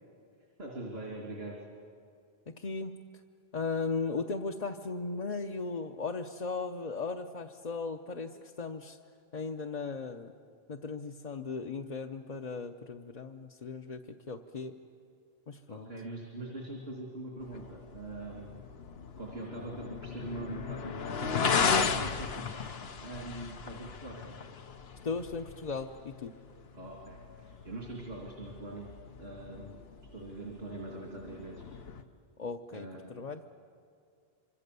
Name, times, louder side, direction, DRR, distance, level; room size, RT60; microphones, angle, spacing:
voice 1, 0.6-1.6 15.7-18.6 19.2-24.4 26.7-28.9 29.2-29.8 30.1-31.6 32.7-33.3, right 2 dB, 85° right, -2 dB, 3.2 m, -43 dB
voice 2, 2.6-3.0 3.5-9.0 9.3-10.3 10.7-14.0 14.3-14.7 15.5-15.9 25.0-26.3 32.4-33.4, left 4 dB, 45° left, 2 dB, 0.8 m, -37 dB
sound 1, 17.4-32.0, left 5 dB, 75° left, 1.2 m, -36 dB
26.0 x 25.5 x 6.9 m, 2.3 s
omnidirectional pair, 1.0 m